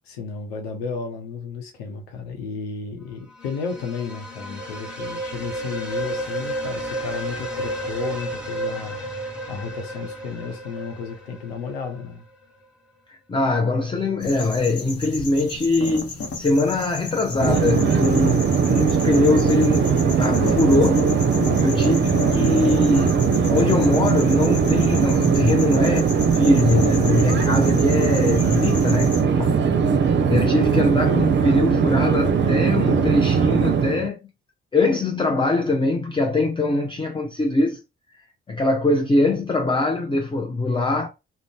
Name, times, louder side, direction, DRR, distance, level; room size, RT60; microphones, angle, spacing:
voice 1, 0.1-12.2 21.4-21.7 29.4-29.7, left 5 dB, 85° left, 0.7 m, -33 dB
sound 1, 3.3-12.1, right 1 dB, 5° right, 1.3 m, -32 dB
voice 2, 13.1-19.9 20.2-21.1 21.6-29.5 30.3-34.2 34.7-37.8 38.5-41.1, left 2 dB, 15° left, 0.5 m, -22 dB
sound 2, 14.2-29.2, left 3 dB, 50° left, 1.0 m, -33 dB
Conversation / Chatter / Fixed-wing aircraft airplane, 17.4-34.1, right 6 dB, 35° right, 0.6 m, -20 dB
2.5 x 2.1 x 3.3 m
hypercardioid pair, 45°, 31 cm